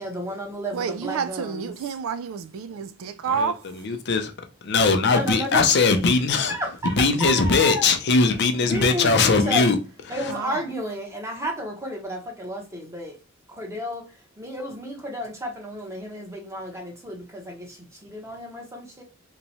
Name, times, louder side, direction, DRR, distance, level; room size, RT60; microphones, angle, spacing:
voice 1, 0.0-1.7 5.0-5.7 6.5-7.9 8.5-9.7 10.1-13.2 13.5-19.0, equal, 15° right, 0.9 m, -32 dB
voice 2, 0.7-3.6 10.3-10.6, right 6 dB, 65° right, 0.3 m, -29 dB
voice 3, 3.2-4.3 4.6-6.6 6.8-9.8 10.1-10.3, left 4 dB, 50° left, 0.5 m, -20 dB
3.0 x 2.2 x 4.0 m
head